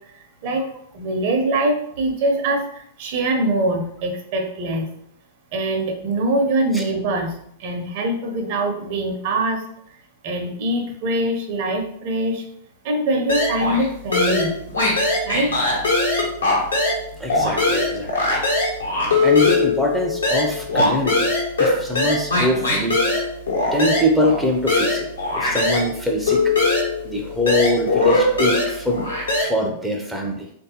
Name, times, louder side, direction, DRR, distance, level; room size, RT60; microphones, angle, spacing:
voice 1, 0.9-4.9 5.5-7.3 7.6-9.6 10.2-12.4 12.8-14.5 15.3-15.5, right 1 dB, 50° right, 4 dB, 0.6 m, -23 dB
sound 1, 13.3-13.9 14.1-17.0 17.3-25.9 26.3-29.4, left 2 dB, 80° left, 1.1 m, -20 dB
voice 2, 17.2-18.5 19.2-21.3 21.6-23.0 23.7-25.1 25.3-26.5 27.0-29.0 29.4-30.5, left 1 dB, ahead, 1 dB, 0.5 m, -23 dB
3.4 x 2.6 x 2.7 m, 0.70 s
figure-of-eight pair, 95°, 0 cm